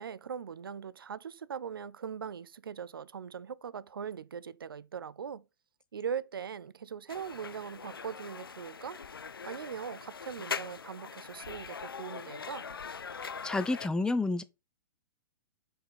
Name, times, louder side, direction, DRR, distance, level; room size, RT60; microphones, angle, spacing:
voice 1, 0.0-5.4 5.9-9.0 9.4-12.7, right 7 dB, 80° right, 0.5 m, -40 dB
sound 1, 7.1-13.9, left 6 dB, 85° left, 0.4 m, -42 dB
voice 2, 13.2-14.4, left 2 dB, 5° left, 0.5 m, -30 dB
6.2 x 4.8 x 5.2 m
figure-of-eight pair, 115°, 12 cm